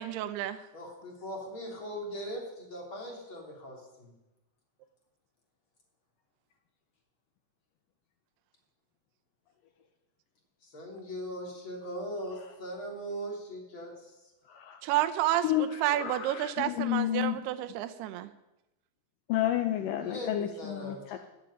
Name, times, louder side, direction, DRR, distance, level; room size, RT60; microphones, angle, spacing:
voice 1, 0.0-0.6 14.8-18.3, right 13 dB, 90° right, 11 dB, 2.9 m, -30 dB
voice 2, 0.7-4.1 10.6-14.2 20.0-21.3, equal, 35° left, -1 dB, 3.7 m, -40 dB
voice 3, 14.5-14.8 15.4-17.4 19.3-21.2, left 12 dB, 75° left, 7 dB, 2.1 m, -31 dB
14.0 x 8.2 x 9.9 m, 0.97 s
omnidirectional pair, 4.5 m